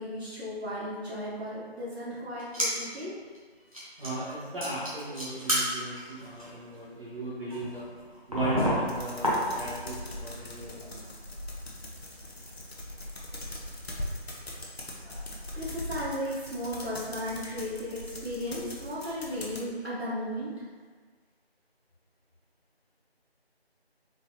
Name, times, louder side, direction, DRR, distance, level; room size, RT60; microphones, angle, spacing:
voice 1, 0.0-3.1 9.5-9.6 15.0-20.5, equal, 85° right, -9 dB, 1.3 m, -35 dB
sound 1, 2.4-3.0 3.3-3.4 3.7-4.3 4.6-9.9 10.2-10.9 11.2-11.3 11.8-14.0 14.4-14.5, equal, 35° right, 0.7 m, -32 dB
voice 2, 4.0-7.9 8.3-11.1, right 2 dB, 60° right, -9 dB, 1.3 m, -36 dB
sound 2, 8.9-19.6, left 1 dB, 70° left, 0.8 m, -41 dB
3.8 x 2.4 x 2.9 m, 1.5 s
figure-of-eight pair, 175°, 32 cm